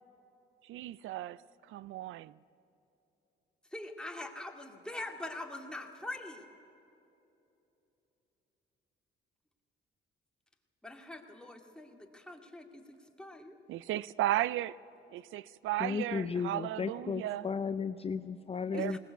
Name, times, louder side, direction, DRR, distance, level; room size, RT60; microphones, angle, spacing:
voice 1, 0.6-1.4 1.7-2.3 13.7-14.8 15.1-17.5 18.7-19.0, right 14 dB, 85° right, 0.4 m, -35 dB
voice 2, 3.7-6.5 10.8-13.5 18.7-19.0, left 1 dB, 5° left, 2.4 m, -43 dB
voice 3, 15.8-19.0, left 5 dB, 30° left, 0.6 m, -34 dB
20.5 x 18.5 x 8.2 m
cardioid pair, 90°, 20 cm